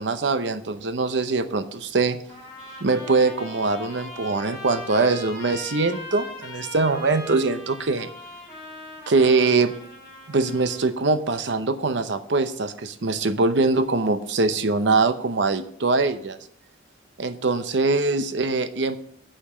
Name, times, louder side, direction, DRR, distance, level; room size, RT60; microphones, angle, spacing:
voice 1, 0.0-2.2 2.8-8.1 9.1-9.7 10.3-16.4 17.2-19.0, right 3 dB, 65° right, 10 dB, 0.7 m, -23 dB
Trumpet, 2.3-10.9, left 2 dB, 20° left, 3.7 m, -40 dB
8.8 x 5.2 x 7.4 m, 0.65 s
head